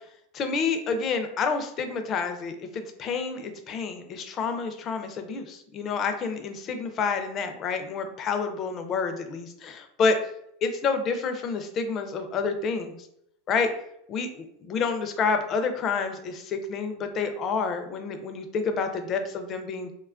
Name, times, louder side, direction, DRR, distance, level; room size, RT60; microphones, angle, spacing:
voice 1, 0.3-10.2 10.6-13.0 13.5-13.7 14.1-19.9, left 5 dB, 30° left, 7 dB, 0.3 m, -29 dB
3.0 x 2.2 x 2.4 m, 0.75 s
supercardioid pair, 145°, 0 cm